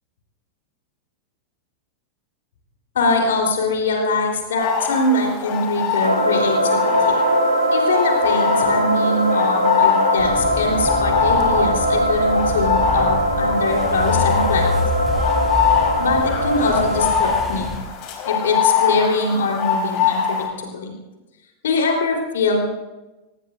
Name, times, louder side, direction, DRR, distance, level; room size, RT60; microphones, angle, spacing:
voice 1, 3.0-6.8 7.7-14.7 16.0-17.7 18.2-20.9 21.6-22.6, left 3 dB, 60° left, 0 dB, 3.7 m, -22 dB
sound 1, 4.6-20.5, left 7 dB, 40° left, 4.0 m, -24 dB
sound 2, 6.0-17.1, equal, 85° right, 1.5 m, -21 dB
sound 3, 10.2-17.8, left 2 dB, ahead, 4.4 m, -28 dB
25.5 x 18.0 x 2.6 m, 1.1 s
figure-of-eight pair, 90°, 0 cm